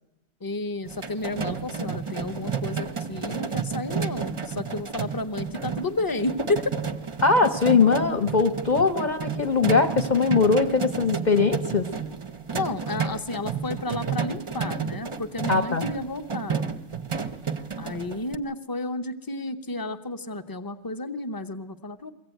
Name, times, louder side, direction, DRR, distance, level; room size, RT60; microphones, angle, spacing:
voice 1, 0.4-6.8 12.5-16.6 17.8-22.1, left 2 dB, 20° left, 8 dB, 0.6 m, -31 dB
sound 1, 0.8-18.4, right 6 dB, 30° right, 0.6 m, -31 dB
voice 2, 7.2-11.9 15.5-15.8, left 4 dB, 35° left, 8 dB, 1.0 m, -21 dB
22.5 x 16.0 x 9.1 m, 1.1 s
omnidirectional pair, 1.4 m